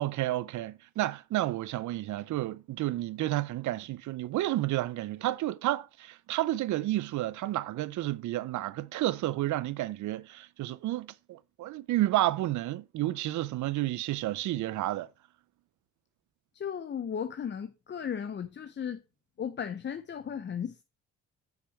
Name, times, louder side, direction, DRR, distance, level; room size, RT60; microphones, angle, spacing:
voice 1, 0.0-15.1, right 15 dB, 75° right, 0.6 m, -31 dB
voice 2, 16.5-19.0 19.4-20.8, left 8 dB, 35° left, 0.7 m, -35 dB
6.9 x 6.0 x 4.5 m
cardioid pair, 90°, 30 cm